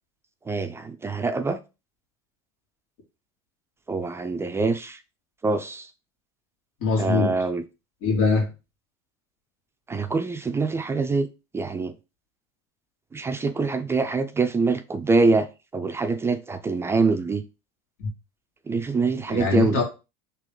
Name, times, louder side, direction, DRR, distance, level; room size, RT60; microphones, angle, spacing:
voice 1, 0.5-1.6 3.9-5.0 5.4-5.9 7.0-7.6 9.9-11.3 11.5-11.9 13.1-15.5 15.7-17.4 18.7-19.8, right 4 dB, 15° right, 0.4 m, -24 dB
voice 2, 6.8-7.4 8.0-8.5 18.0-18.1 19.3-19.8, left 4 dB, 75° left, 2.2 m, -22 dB
3.8 x 2.9 x 4.7 m
supercardioid pair, 120°, 17 cm